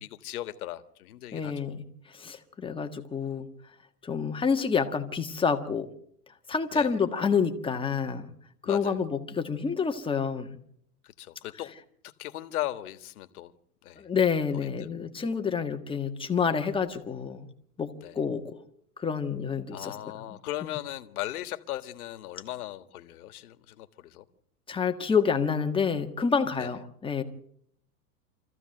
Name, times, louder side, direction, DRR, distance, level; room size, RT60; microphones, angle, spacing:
voice 1, 0.0-1.6 6.7-6.9 8.6-9.0 11.0-11.7 12.0-13.5 13.8-14.0 14.5-14.9 18.0-18.2 19.7-24.2 26.6-26.7, left 14 dB, 65° left, 11 dB, 1.6 m, -38 dB
voice 2, 1.3-1.8 2.1-3.5 4.0-5.9 6.5-8.3 8.6-10.6 14.0-17.5 17.8-18.5 19.0-19.9 24.7-27.2, left 6 dB, 10° left, 5 dB, 1.5 m, -28 dB
25.0 x 15.0 x 7.8 m, 0.69 s
hypercardioid pair, 130°, 47 cm